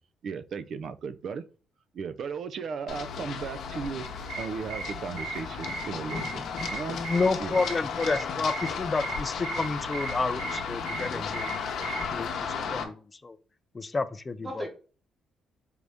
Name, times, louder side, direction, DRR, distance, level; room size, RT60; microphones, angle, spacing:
voice 1, 0.2-1.4 1.9-4.0 4.4-7.0 7.4-7.6, right 6 dB, 60° right, 0.4 m, -36 dB
Run, 2.9-12.8, left 6 dB, 75° left, 0.8 m, -35 dB
sound 1, 4.0-12.2, right 4 dB, 85° right, 1.0 m, -39 dB
voice 2, 6.9-11.5 11.8-12.3 12.7-13.4 13.7-14.7, left 3 dB, 25° left, 0.4 m, -30 dB
voice 3, 10.9-11.3 12.3-12.8 14.4-14.7, right 1 dB, 20° right, 1.0 m, -41 dB
4.6 x 2.6 x 3.4 m
cardioid pair, 90°, 0 cm